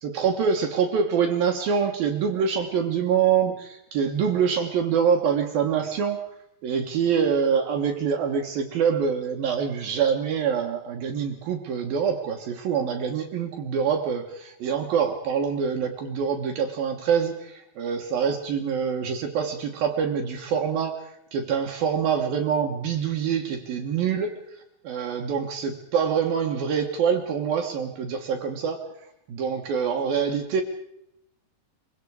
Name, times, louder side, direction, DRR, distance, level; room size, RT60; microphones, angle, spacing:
voice 1, 0.0-6.2 6.6-20.9 21.3-24.3 24.8-28.8 29.3-30.6, right 7 dB, 65° right, 4 dB, 2.8 m, -25 dB
24.5 x 24.0 x 4.9 m, 0.79 s
omnidirectional pair, 5.4 m